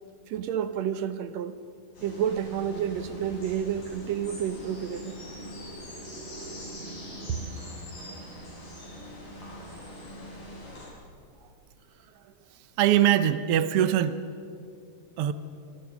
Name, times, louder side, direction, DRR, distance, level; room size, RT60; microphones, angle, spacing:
voice 1, 0.3-1.6 2.0-5.2, right 9 dB, 70° right, 1.7 m, -30 dB
sound 1, 1.9-10.9, equal, 65° left, 9.5 m, -42 dB
voice 2, 12.8-14.2 15.2-15.3, right 11 dB, 85° right, 1.3 m, -22 dB
26.5 x 26.0 x 6.3 m
omnidirectional pair, 4.1 m